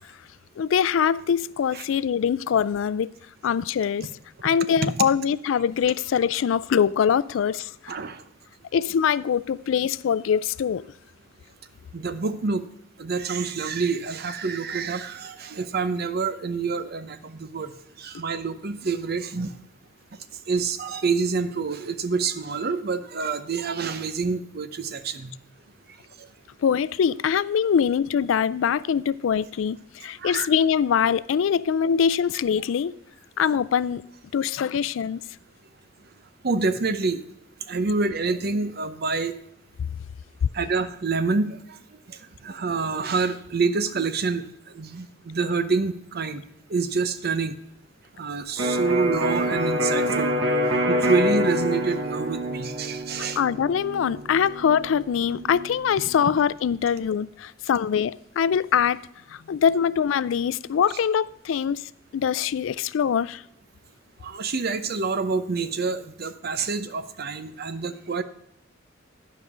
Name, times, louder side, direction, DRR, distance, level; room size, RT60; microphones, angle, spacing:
voice 1, 0.6-3.1 3.4-4.1 4.4-7.9 8.7-10.9 26.6-32.9 33.4-34.0 34.3-35.2 53.4-59.0 59.3-63.4, left 7 dB, 85° left, 0.3 m, -23 dB
voice 2, 7.9-8.2 11.9-12.6 13.0-17.7 18.0-19.5 20.5-25.3 30.2-30.5 36.4-37.2 37.7-39.3 40.5-41.8 42.1-44.5 44.7-46.4 46.7-47.5 48.2-50.3 50.9-53.4 64.2-68.2, right 4 dB, 55° right, 0.7 m, -27 dB
Electric guitar, 48.6-56.3, equal, 70° right, 1.4 m, -27 dB
11.0 x 5.2 x 6.0 m
head